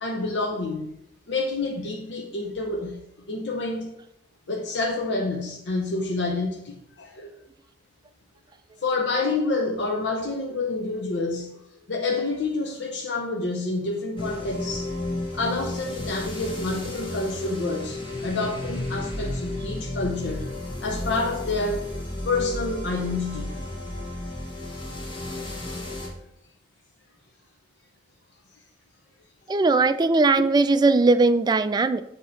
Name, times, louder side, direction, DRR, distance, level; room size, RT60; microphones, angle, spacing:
voice 1, 0.0-0.9 1.3-3.0 3.3-3.9 4.5-7.3 8.8-11.5 11.9-14.9 15.3-20.5 20.8-21.9 22.2-23.5, left 3 dB, 85° left, 0.7 m, -28 dB
sound 1, 14.2-26.1, left 1 dB, 30° left, 1.4 m, -33 dB
voice 2, 29.5-32.0, right 3 dB, 25° right, 0.3 m, -19 dB
7.4 x 2.9 x 5.7 m
head